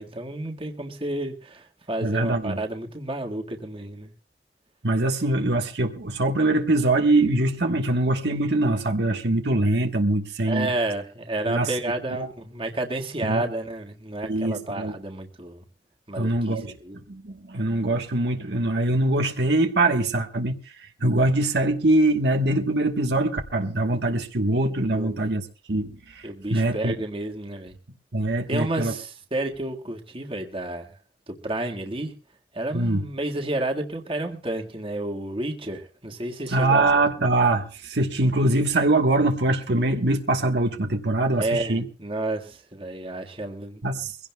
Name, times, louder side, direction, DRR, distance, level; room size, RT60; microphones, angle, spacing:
voice 1, 0.0-4.1 10.5-15.6 16.1-17.0 24.9-25.3 26.2-27.7 28.5-30.9 31.3-32.1 32.5-37.1 41.3-43.8, right 2 dB, 30° right, 1.6 m, -31 dB
voice 2, 2.0-2.6 4.8-10.7 11.5-11.7 12.1-12.3 13.2-13.4 14.2-14.9 16.2-16.7 17.1-26.9 28.1-28.9 32.7-33.0 36.5-41.9 43.8-44.2, right 2 dB, 65° right, 1.2 m, -23 dB
23.0 x 16.5 x 2.2 m
head